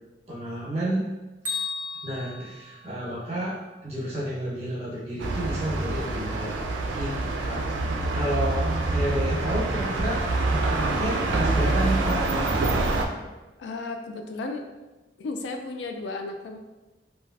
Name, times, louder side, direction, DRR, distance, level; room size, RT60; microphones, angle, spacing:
voice 1, 0.3-1.0 2.0-6.6 6.9-12.8, right 1 dB, 40° right, -6 dB, 1.0 m, -31 dB
Bell, 1.4-3.5, left 5 dB, 10° right, 0.8 m, -35 dB
sound 1, 5.2-13.1, right 2 dB, 90° right, 0.4 m, -26 dB
voice 2, 13.6-14.7 15.2-16.6, left 3 dB, 70° left, 5 dB, 0.3 m, -34 dB
3.1 x 2.4 x 2.5 m, 1.1 s
head